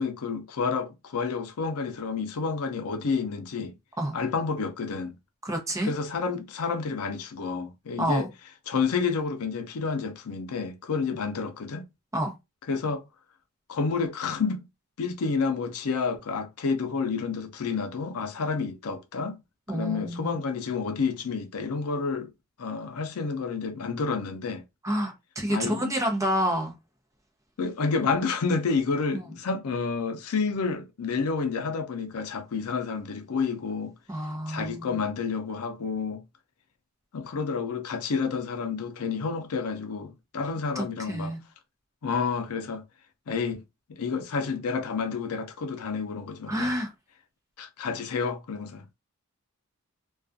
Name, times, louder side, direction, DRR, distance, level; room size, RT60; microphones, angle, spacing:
voice 1, 0.0-3.7 4.1-5.2 5.8-8.3 8.7-11.9 12.7-13.0 13.7-14.6 15.0-19.4 19.7-22.3 22.6-24.6 25.5-25.9 27.6-33.9 34.5-36.2 37.1-41.3 42.0-42.8 43.3-43.6 43.9-46.7 47.6-48.8, left 5 dB, 85° left, 0.5 m, -29 dB
voice 2, 5.4-5.9 8.0-8.3 12.1-12.3 19.7-20.4 24.8-26.7 34.1-35.0 40.8-41.4 46.5-46.9, equal, 15° right, 0.7 m, -28 dB
2.3 x 2.3 x 2.4 m
head